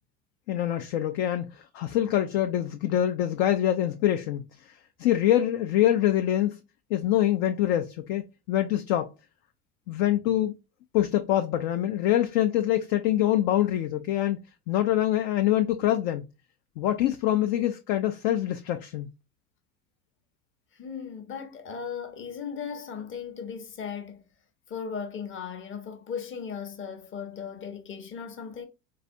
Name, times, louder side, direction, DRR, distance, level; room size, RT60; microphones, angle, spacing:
voice 1, 0.5-4.5 5.0-6.6 6.9-9.1 9.9-10.5 10.9-14.4 14.7-16.3 16.8-19.1, left 12 dB, 50° left, 0.4 m, -25 dB
voice 2, 20.7-24.2 24.7-28.6, left 6 dB, 25° left, 0.8 m, -37 dB
4.0 x 2.3 x 2.5 m
figure-of-eight pair, 70°, 44 cm